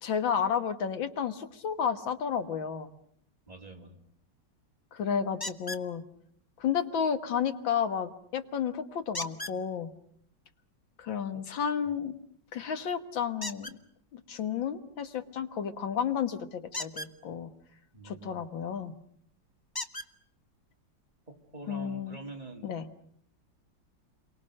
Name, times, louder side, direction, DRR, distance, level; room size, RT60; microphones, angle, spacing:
voice 1, 0.0-2.9 4.9-6.0 6.6-9.9 11.0-12.2 12.5-13.8 14.1-17.5 18.0-18.9 21.7-22.2 22.6-22.9, left 7 dB, 85° left, 9 dB, 2.1 m, -32 dB
voice 2, 3.5-4.0 11.3-11.4 11.8-11.9 17.9-18.5 21.3-22.7, right 2 dB, 20° right, 1 dB, 3.1 m, -46 dB
sound 1, 5.4-5.9 9.1-9.6 13.4-13.8 16.7-17.1 18.8-18.9 19.7-20.1 21.1-21.2 21.7-21.8, left 2 dB, 15° left, 0.9 m, -37 dB
30.0 x 23.5 x 6.5 m, 0.65 s
omnidirectional pair, 2.0 m